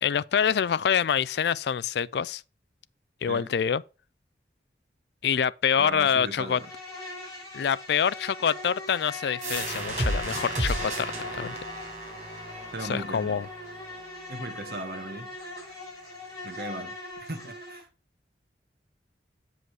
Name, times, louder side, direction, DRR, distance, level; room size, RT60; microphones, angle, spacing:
voice 1, 0.0-2.4 3.2-3.8 5.2-6.6 7.5-11.6 12.9-13.5, left 7 dB, 70° left, 0.3 m, -26 dB
voice 2, 5.8-6.7 12.7-13.4 14.3-15.3 16.4-16.9 17.3-17.9, right 2 dB, 55° right, 1.4 m, -37 dB
Insect, 6.4-17.8, left 2 dB, 20° left, 5.1 m, -41 dB
sound 1, 9.4-14.8, right 1 dB, 40° right, 3.9 m, -33 dB
7.8 x 5.1 x 4.7 m
head